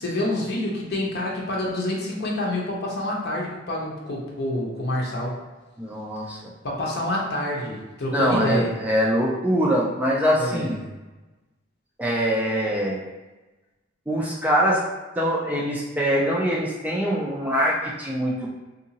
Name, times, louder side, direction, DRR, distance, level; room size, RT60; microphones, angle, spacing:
voice 1, 0.0-5.4 6.6-8.8 10.4-10.9, left 1 dB, 50° left, -3 dB, 0.8 m, -27 dB
voice 2, 5.8-6.4 8.1-10.7 12.0-13.0 14.1-14.8 15.2-18.5, equal, 10° right, -4 dB, 0.3 m, -23 dB
3.8 x 2.7 x 2.8 m, 1.1 s
head